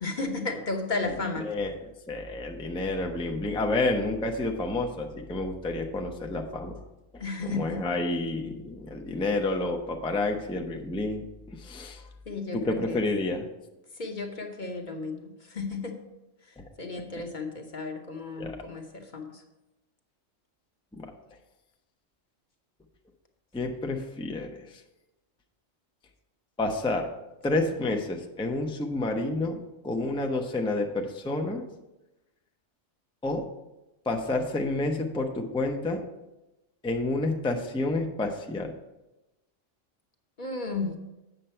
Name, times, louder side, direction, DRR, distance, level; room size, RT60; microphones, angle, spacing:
voice 1, 0.0-1.5 7.2-7.8 12.3-13.0 14.0-16.0 16.8-19.4 40.4-40.9, left 3 dB, 40° left, 3 dB, 1.0 m, -33 dB
voice 2, 1.4-1.7 2.1-6.8 7.1-7.2 7.5-12.0 12.5-13.5 16.6-16.7 18.4-18.6 20.9-21.1 23.5-24.8 26.6-27.1 27.4-31.6 33.2-33.4 34.1-36.0 36.8-38.7, left 2 dB, 5° left, 3 dB, 0.4 m, -29 dB
8.1 x 6.6 x 4.4 m, 0.99 s
omnidirectional pair, 1.3 m